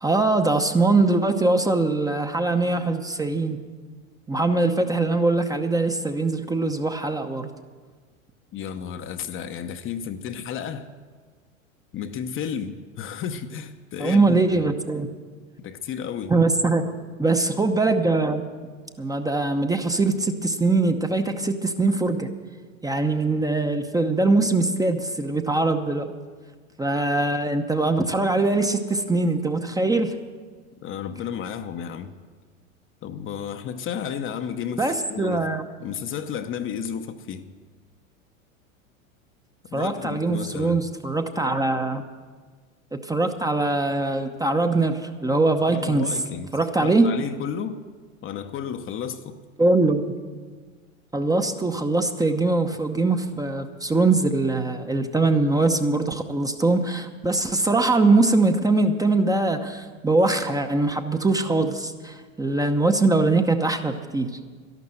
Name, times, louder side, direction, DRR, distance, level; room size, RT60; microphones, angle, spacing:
voice 1, 0.0-3.6 4.3-7.5 14.0-15.1 16.3-16.8 17.2-18.4 19.0-22.3 22.8-26.1 26.8-30.1 34.8-35.6 39.7-42.0 43.0-46.0 46.5-47.1 49.6-50.1 51.1-64.3, right 3 dB, 10° right, 0.8 m, -22 dB
voice 2, 8.5-10.9 11.9-14.7 15.6-16.3 30.8-32.1 33.0-35.5 35.8-37.5 39.7-40.8 45.7-46.5 46.8-47.8 48.2-49.4, left 8 dB, 30° left, 0.8 m, -32 dB
12.0 x 12.0 x 7.7 m
hypercardioid pair, 90°, 41 cm